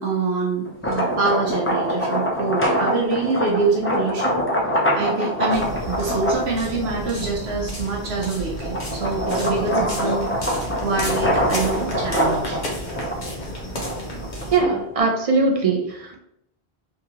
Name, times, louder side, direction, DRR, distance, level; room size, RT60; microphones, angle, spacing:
voice 1, 0.0-4.4 4.9-12.6, right 3 dB, 70° right, -2 dB, 1.0 m, -25 dB
sound 1, 0.7-7.3 7.8-15.0, equal, 20° left, 0.4 m, -25 dB
sound 2, 5.5-14.6, equal, 45° left, 1.1 m, -31 dB
voice 2, 14.5-16.2, right 3 dB, 45° right, 2 dB, 0.5 m, -21 dB
3.6 x 2.8 x 2.8 m, 0.78 s
omnidirectional pair, 1.1 m